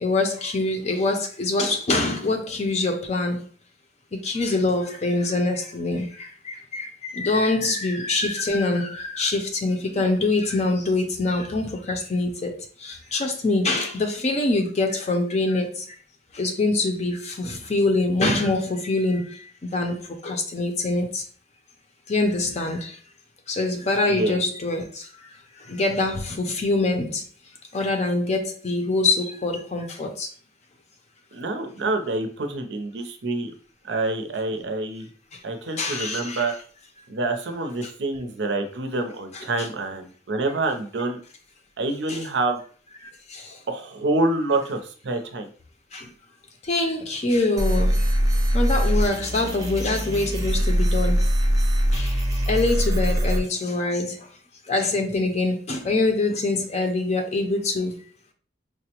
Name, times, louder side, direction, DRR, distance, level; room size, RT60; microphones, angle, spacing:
voice 1, 0.0-3.4 4.2-6.1 6.5-6.9 7.1-12.5 12.8-15.8 16.4-19.3 19.7-20.0 20.2-21.2 22.1-22.9 23.5-24.8 25.7-27.2 27.7-30.3 35.8-36.5 39.3-39.7 42.1-42.3 45.9-46.0 46.7-47.9 48.5-51.2 51.9-52.1 52.5-54.1 54.7-57.9, left 2 dB, 40° left, 0.5 m, -24 dB
voice 2, 24.1-24.4 31.3-33.5 33.8-35.1 35.4-36.5 37.1-41.2 41.8-42.6 43.7-45.5, right 2 dB, 85° right, 0.6 m, -27 dB
sound 1, 47.6-53.4, equal, 20° right, 0.6 m, -22 dB
4.7 x 2.1 x 2.9 m
head